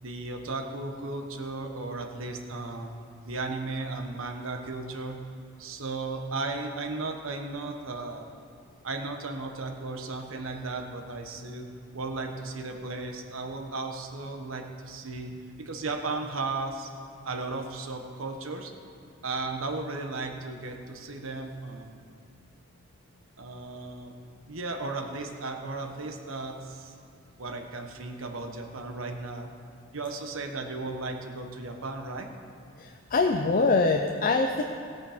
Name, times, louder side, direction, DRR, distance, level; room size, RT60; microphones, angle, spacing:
voice 1, 0.0-2.9 3.2-5.2 5.6-8.3 8.8-11.7 11.9-15.3 15.6-16.9 17.2-18.7 19.2-22.0 23.4-24.1 24.5-26.9 27.4-29.5 29.9-32.3, right 3 dB, 85° right, 4 dB, 1.2 m, -35 dB
voice 2, 32.8-34.6, left 3 dB, 45° left, 4 dB, 0.6 m, -24 dB
16.5 x 8.5 x 5.0 m, 2.4 s
head